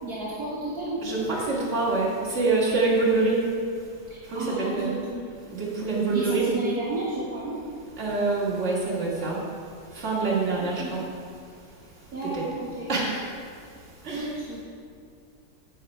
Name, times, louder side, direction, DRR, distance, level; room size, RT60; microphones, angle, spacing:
voice 1, 0.0-1.0 4.3-5.3 6.1-7.6 10.6-10.9 12.1-13.1 14.1-14.6, right 2 dB, 55° right, -8 dB, 2.1 m, -32 dB
voice 2, 1.0-3.5 4.3-5.0 5.5-6.6 8.0-9.4 9.9-11.0 12.3-12.4 12.9-13.2 14.0-14.3, right 3 dB, 40° right, -5 dB, 2.4 m, -25 dB
10.0 x 8.9 x 4.5 m, 2.3 s
omnidirectional pair, 2.0 m